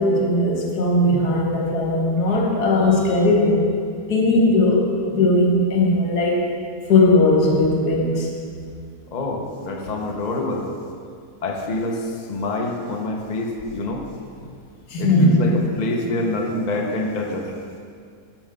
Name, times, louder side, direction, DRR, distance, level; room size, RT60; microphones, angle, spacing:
voice 1, 0.0-3.7 4.1-6.4 6.9-8.3 14.9-15.4, left 2 dB, 70° left, -1 dB, 1.8 m, -18 dB
voice 2, 9.1-10.7 11.4-14.0 15.0-17.5, left 2 dB, 40° left, 1 dB, 0.6 m, -26 dB
7.1 x 5.5 x 6.7 m, 2.2 s
omnidirectional pair, 1.7 m